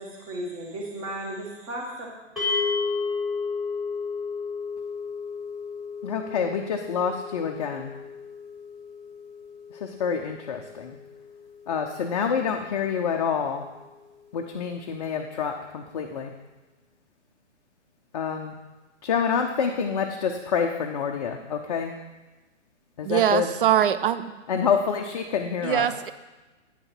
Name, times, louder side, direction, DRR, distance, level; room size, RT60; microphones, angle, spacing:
voice 1, 0.0-2.1, right 1 dB, 30° right, 0 dB, 1.9 m, -35 dB
sound 1, 2.4-12.7, left 4 dB, ahead, 1.5 m, -33 dB
voice 2, 6.0-7.9 9.7-11.0 11.7-13.6 14.3-16.3 18.1-18.5 19.0-21.9 23.0-23.5 24.5-25.9, left 6 dB, 35° left, 2 dB, 0.5 m, -27 dB
voice 3, 23.0-24.4 25.6-26.1, right 10 dB, 45° right, 13 dB, 0.5 m, -23 dB
8.9 x 6.2 x 4.4 m, 1.2 s
figure-of-eight pair, 130°, 37 cm